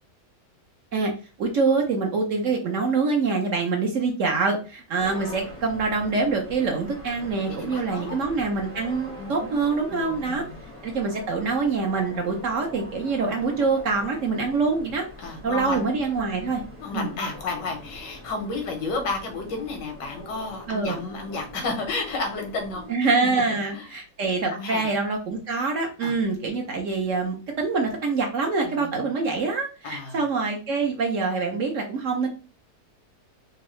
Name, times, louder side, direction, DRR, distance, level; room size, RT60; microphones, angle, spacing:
voice 1, 1.4-10.4 10.8-15.1 15.4-16.6 16.9-17.1 20.7-21.0 22.9-32.3, right 4 dB, 60° right, 2 dB, 0.9 m, -25 dB
sound 1, 5.0-22.9, left 1 dB, 10° right, 0.7 m, -43 dB
voice 2, 7.5-8.1 9.2-9.5 9.9-10.5 15.2-15.8 16.8-22.8 23.2-23.9 24.5-24.9 26.0-26.2 28.6-29.0 29.8-30.2, left 3 dB, 90° left, 4 dB, 1.6 m, -32 dB
3.6 x 2.6 x 3.1 m, 0.34 s
omnidirectional pair, 1.8 m